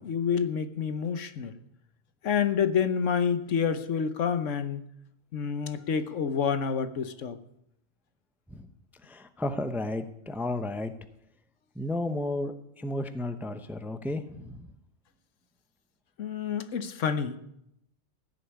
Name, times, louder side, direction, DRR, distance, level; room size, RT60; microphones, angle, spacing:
voice 1, 0.0-1.6 2.2-4.8 5.3-7.4 16.2-17.4, left 7 dB, 75° left, 11 dB, 1.3 m, -28 dB
voice 2, 9.0-10.9 11.8-14.7, left 1 dB, ahead, 9 dB, 0.6 m, -33 dB
15.5 x 6.9 x 9.7 m, 0.79 s
omnidirectional pair, 1.3 m